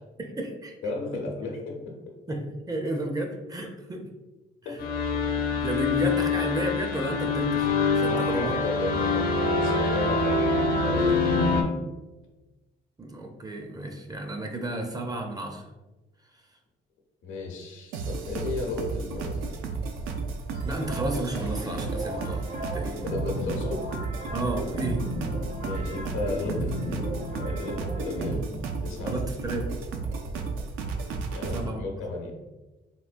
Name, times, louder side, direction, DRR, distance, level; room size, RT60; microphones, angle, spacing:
voice 1, 0.2-0.8 2.3-4.1 4.7-4.8 5.6-8.6 8.8-9.0 13.0-15.7 20.6-23.0 24.3-25.1 29.0-29.7 31.5-31.8, right 1 dB, 20° right, 3 dB, 0.4 m, -32 dB
voice 2, 0.8-2.0 4.6-4.7 8.0-11.6 17.2-19.5 23.0-23.8 25.6-28.5 28.8-29.1 31.3-32.3, left 3 dB, 80° left, 0 dB, 0.8 m, -34 dB
sound 1, 4.8-11.6, left 3 dB, 50° left, 0.5 m, -25 dB
sound 2, 17.9-31.6, right 4 dB, 85° right, 0.4 m, -33 dB
sound 3, 20.5-28.4, equal, 55° right, 0.7 m, -36 dB
3.5 x 2.2 x 2.5 m, 1.1 s
cardioid pair, 90°, 20 cm